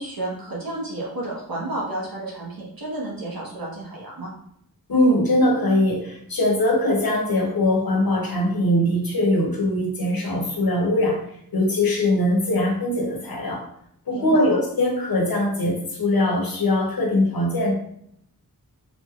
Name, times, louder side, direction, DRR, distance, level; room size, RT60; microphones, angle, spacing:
voice 1, 0.0-4.3 14.1-14.6, right 1 dB, 80° right, -5 dB, 1.1 m, -31 dB
voice 2, 4.9-11.2 11.5-13.6 14.1-17.7, left 1 dB, 80° left, 0 dB, 0.9 m, -21 dB
3.8 x 3.0 x 2.3 m, 0.72 s
wide cardioid pair, 65°, 35 cm